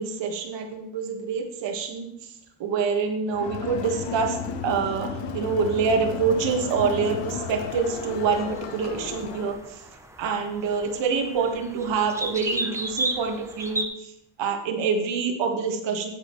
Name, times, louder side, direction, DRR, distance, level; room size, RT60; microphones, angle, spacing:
voice 1, 0.0-2.1 2.6-4.4 4.6-5.1 5.3-9.6 10.2-13.9 14.4-16.1, right 5 dB, 75° right, 3 dB, 1.7 m, -26 dB
Crowd, 3.3-9.6, left 6 dB, 75° left, 1.1 m, -34 dB
sound 1, 7.8-13.9, right 1 dB, 5° right, 0.8 m, -34 dB
9.3 x 9.2 x 3.2 m, 0.79 s
cardioid pair, 130°, 44 cm